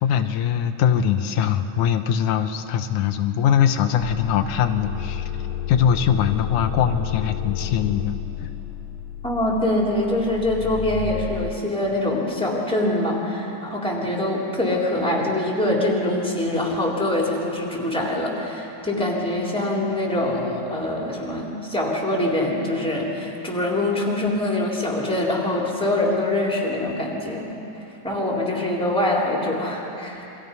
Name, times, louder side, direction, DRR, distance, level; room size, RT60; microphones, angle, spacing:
voice 1, 0.0-5.3 5.7-8.2 8.4-8.5, left 8 dB, 85° left, 8 dB, 2.4 m, -21 dB
sound 1, 4.0-11.5, left 11 dB, 70° left, 1.8 m, -31 dB
voice 2, 9.2-27.6 28.0-30.3, left 1 dB, ahead, -3 dB, 3.7 m, -24 dB
28.5 x 24.5 x 5.5 m, 2.9 s
omnidirectional pair, 3.4 m